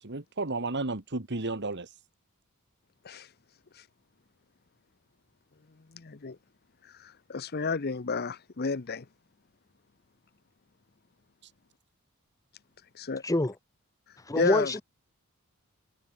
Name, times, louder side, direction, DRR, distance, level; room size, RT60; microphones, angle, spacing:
voice 1, 0.0-2.0 11.4-11.5, right 3 dB, 50° right, 1.8 m, -33 dB
voice 2, 5.9-6.4 7.0-9.0 12.9-13.2 14.3-14.7, left 4 dB, 45° left, 0.8 m, -31 dB
voice 3, 13.2-13.5 14.3-14.8, left 1 dB, 15° left, 0.9 m, -26 dB
head